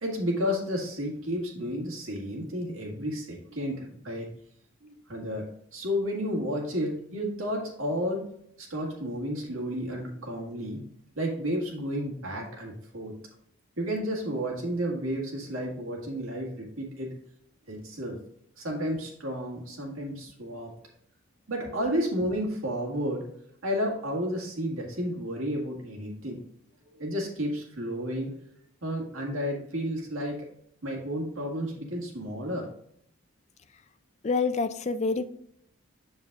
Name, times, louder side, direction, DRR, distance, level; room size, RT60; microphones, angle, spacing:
voice 1, 0.0-4.3 4.8-5.4 5.7-8.3 8.6-10.8 11.2-13.1 13.8-17.1 17.7-18.2 18.6-20.7 21.5-23.2 23.6-26.4 27.0-28.3 28.8-30.4 30.8-32.7, equal, 80° right, -1 dB, 1.8 m, -31 dB
voice 2, 34.2-35.2, left 4 dB, 30° left, 11 dB, 0.3 m, -27 dB
7.2 x 6.6 x 2.4 m, 0.71 s
head